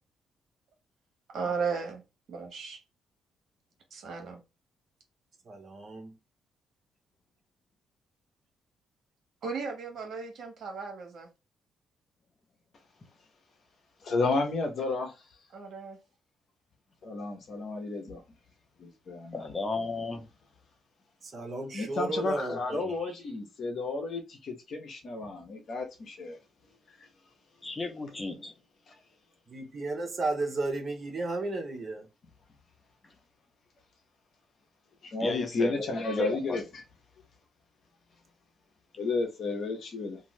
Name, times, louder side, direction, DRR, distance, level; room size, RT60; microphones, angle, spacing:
voice 1, 1.3-2.0 2.3-2.8 3.9-4.4 9.4-11.3 15.5-16.0, right 5 dB, 60° right, 1.2 m, -35 dB
voice 2, 5.4-6.2 21.2-23.1 29.5-32.1, right 2 dB, 45° right, 0.9 m, -34 dB
voice 3, 14.0-15.1 17.0-18.2 18.8-19.4 21.7-26.4 35.0-36.6 39.0-40.2, left 3 dB, 55° left, 0.9 m, -32 dB
voice 4, 19.3-20.3 22.5-22.6 27.6-28.5 33.0-33.1 35.2-35.9 36.2-36.6, left 2 dB, 25° left, 0.7 m, -34 dB
2.7 x 2.4 x 3.1 m
cardioid pair, 90°, 0 cm